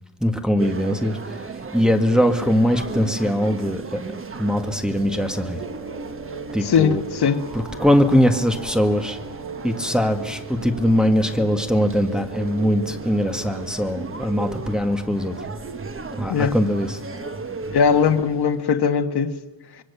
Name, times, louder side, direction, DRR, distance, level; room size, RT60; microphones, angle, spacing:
voice 1, 0.2-1.2 1.7-4.0 4.4-5.6 6.5-7.0 7.8-9.2 9.6-15.3 16.2-17.0, equal, ahead, 1.8 m, -21 dB
sound 1, 0.6-18.6, right 4 dB, 30° right, 1.3 m, -36 dB
sound 2, 3.9-15.4, right 4 dB, 75° right, 6.2 m, -38 dB
voice 2, 6.6-7.4 16.3-16.6 17.7-19.3, left 6 dB, 60° left, 1.5 m, -19 dB
25.5 x 22.5 x 7.0 m
wide cardioid pair, 135°, 44 cm